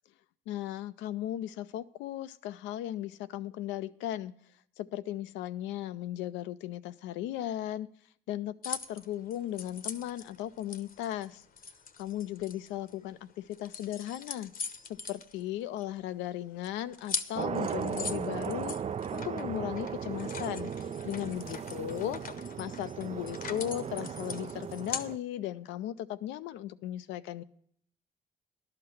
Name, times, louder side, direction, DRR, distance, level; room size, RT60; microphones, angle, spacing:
voice 1, 0.5-4.3 4.8-7.9 8.3-11.4 12.0-14.5 14.9-18.8 19.1-20.7 21.0-22.2 22.6-27.4, left 12 dB, 80° left, 13 dB, 0.5 m, -36 dB
sound 1, 8.6-13.1 13.5-16.0 16.3-16.4 16.6-25.1, left 5 dB, 50° left, 0.8 m, -42 dB
sound 2, 17.3-25.2, right 7 dB, 35° right, 0.4 m, -37 dB
11.5 x 5.8 x 7.9 m, 0.65 s
hypercardioid pair, 45°, 19 cm